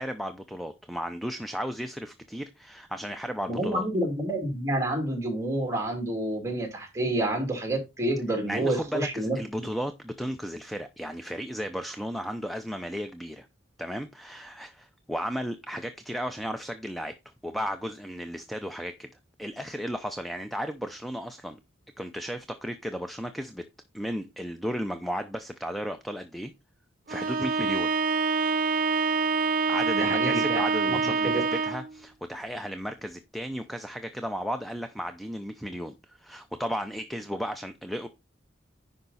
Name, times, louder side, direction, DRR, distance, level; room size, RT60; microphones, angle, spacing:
voice 1, 0.0-3.8 8.5-13.5 13.8-17.1 17.4-19.1 19.4-21.6 22.0-23.6 23.9-26.5 27.1-27.9 29.7-38.1, equal, ahead, 0.6 m, -34 dB
voice 2, 3.5-9.7 29.9-30.6 31.2-31.4, right 1 dB, 15° right, 2.6 m, -29 dB
Bowed string instrument, 27.1-31.9, right 5 dB, 45° right, 0.8 m, -26 dB
10.5 x 5.2 x 4.1 m
head